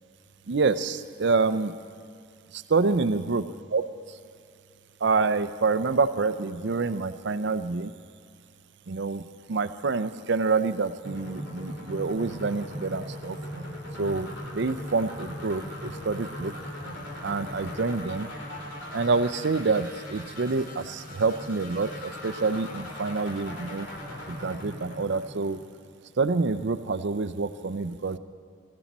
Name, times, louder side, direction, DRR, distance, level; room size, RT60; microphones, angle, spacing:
voice 1, 0.5-1.7 2.5-3.4 3.7-3.9 5.0-7.9 8.9-13.4 14.0-16.5 17.2-18.3 18.9-23.9 24.3-25.6 26.2-28.2, right 4 dB, 55° right, 12 dB, 0.5 m, -27 dB
sound 1, 11.0-26.0, left 1 dB, 60° left, 3.0 m, -39 dB
22.0 x 14.5 x 4.2 m, 2.4 s
head